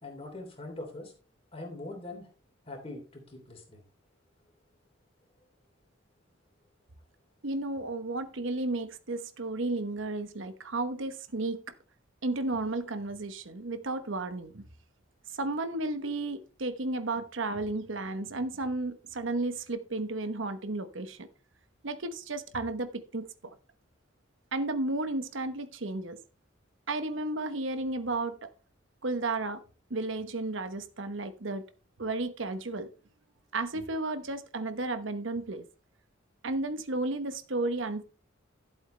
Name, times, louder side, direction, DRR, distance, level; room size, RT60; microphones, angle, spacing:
voice 1, 0.0-1.1 1.5-2.3 2.7-3.8, left 2 dB, 30° left, 3.1 m, -42 dB
voice 2, 7.4-11.6 12.2-14.7 15.4-21.3 21.8-23.5 24.5-26.2 26.9-28.5 29.0-29.6 29.9-31.7 32.0-32.9 33.5-35.6 36.4-38.0, right 2 dB, 75° right, 1.0 m, -33 dB
11.5 x 7.9 x 3.3 m
head